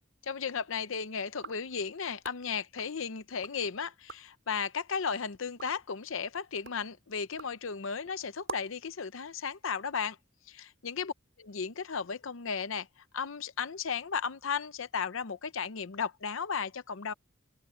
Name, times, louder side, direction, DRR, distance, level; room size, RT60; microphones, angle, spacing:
voice 1, 0.3-10.2 10.5-11.1 11.5-12.9 13.1-17.1, left 6 dB, 75° left, 0.7 m, -35 dB
sound 1, 1.3-3.6 3.9-4.4 4.9-8.9, right 3 dB, 65° right, 4.3 m, -49 dB
open air
head